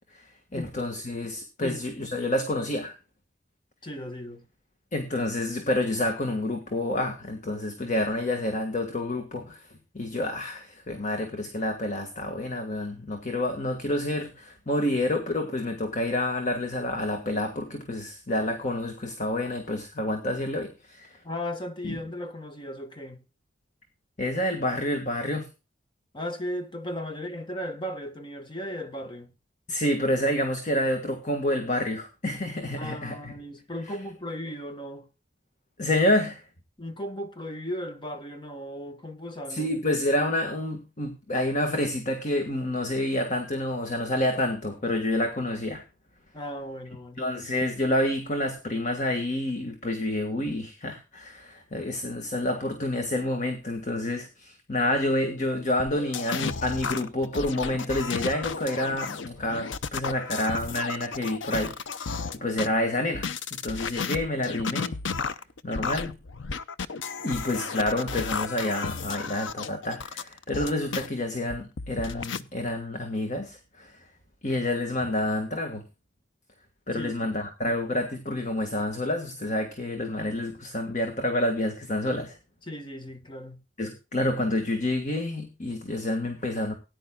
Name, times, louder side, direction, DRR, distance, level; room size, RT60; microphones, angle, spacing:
voice 1, 0.5-3.0 4.9-9.7 9.9-21.2 21.8-22.0 24.2-25.5 29.7-33.3 35.8-36.4 39.5-45.8 47.2-65.0 65.6-66.1 67.2-74.0 74.4-75.8 76.9-82.4 83.8-86.7, left 1 dB, 40° left, 1.6 m, -28 dB
voice 2, 1.6-2.1 3.8-4.5 21.2-23.2 26.1-29.3 32.8-35.1 36.8-39.7 46.3-47.2 62.2-62.4 76.9-77.3 82.6-83.6, equal, 25° left, 1.4 m, -36 dB
sound 1, 55.8-62.7 63.1-71.1 71.5-72.4, left 5 dB, 80° left, 0.6 m, -33 dB
18.5 x 10.0 x 2.3 m
head